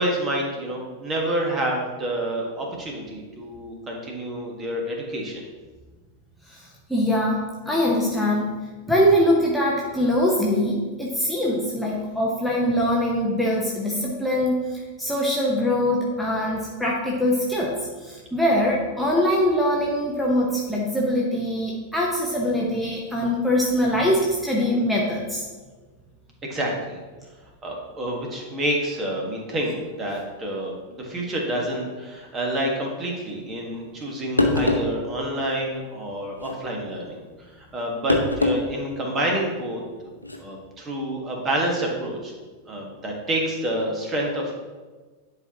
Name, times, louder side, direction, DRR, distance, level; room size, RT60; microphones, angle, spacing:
voice 1, 0.0-5.4 26.5-27.0 27.6-39.8 40.4-42.3 42.7-44.5, right 1 dB, 25° right, -1 dB, 1.6 m, -28 dB
voice 2, 6.5-8.5 8.9-25.5, left 1 dB, ahead, -5 dB, 1.0 m, -23 dB
sound 1, 34.0-34.1 34.4-34.9 36.3-36.6 38.1-38.6 39.0-39.1 40.2-40.4, left 2 dB, 85° left, 0.7 m, -22 dB
10.5 x 4.5 x 2.9 m, 1.3 s
figure-of-eight pair, 90°, 0 cm